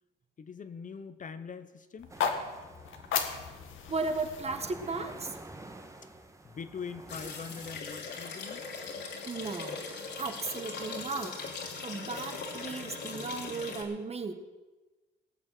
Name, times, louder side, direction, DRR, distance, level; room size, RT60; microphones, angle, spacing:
voice 1, 0.4-2.2 6.4-8.7, left 6 dB, 40° left, 11 dB, 0.9 m, -42 dB
sound 1, 2.0-6.1, left 7 dB, 80° left, 1.8 m, -36 dB
sound 2, 2.1-7.8, right 2 dB, 15° right, 1.6 m, -49 dB
voice 2, 3.9-5.4 9.3-9.8 10.2-11.4 11.8-14.3, right 3 dB, 30° right, 7 dB, 1.7 m, -35 dB
sound 3, 7.1-13.8, left 4 dB, 60° left, 3.1 m, -40 dB
19.0 x 7.3 x 7.8 m, 1.2 s
cardioid pair, 90°, 20 cm